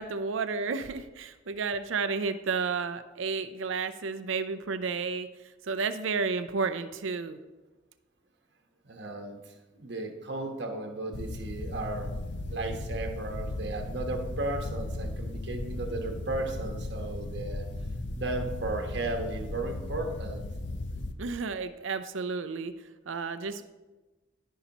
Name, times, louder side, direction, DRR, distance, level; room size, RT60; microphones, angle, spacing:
voice 1, 0.0-5.3 5.6-7.4 21.2-22.7 23.1-23.6, right 4 dB, 80° right, 11 dB, 0.5 m, -31 dB
voice 2, 8.8-12.1 12.5-17.7 18.1-20.4, right 2 dB, 60° right, 3 dB, 1.2 m, -35 dB
sound 1, 11.1-21.1, left 2 dB, 65° left, 0.6 m, -36 dB
14.0 x 5.6 x 2.9 m, 1.2 s
head